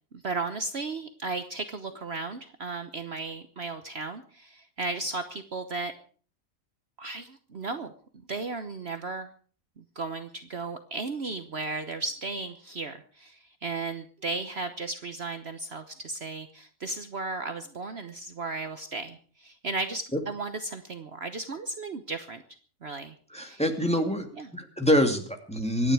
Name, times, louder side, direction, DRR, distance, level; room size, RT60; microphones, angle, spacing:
voice 1, 0.2-5.9 7.0-7.9 8.3-9.3 9.8-22.4 22.8-23.6 24.4-24.5, right 3 dB, 50° right, 8 dB, 1.3 m, -35 dB
voice 2, 23.3-24.3 24.5-25.9, equal, 5° left, 4 dB, 2.3 m, -25 dB
25.0 x 10.5 x 4.8 m, 0.42 s
omnidirectional pair, 1.5 m